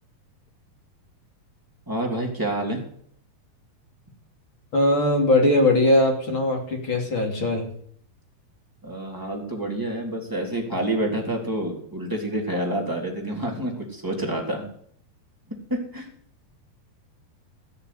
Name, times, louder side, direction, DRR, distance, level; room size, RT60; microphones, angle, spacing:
voice 1, 1.9-2.8 8.8-14.7 15.7-16.1, right 1 dB, 5° right, -1 dB, 3.0 m, -28 dB
voice 2, 4.7-7.7, left 1 dB, 35° left, 2 dB, 3.0 m, -20 dB
16.5 x 6.9 x 9.6 m, 0.63 s
omnidirectional pair, 4.6 m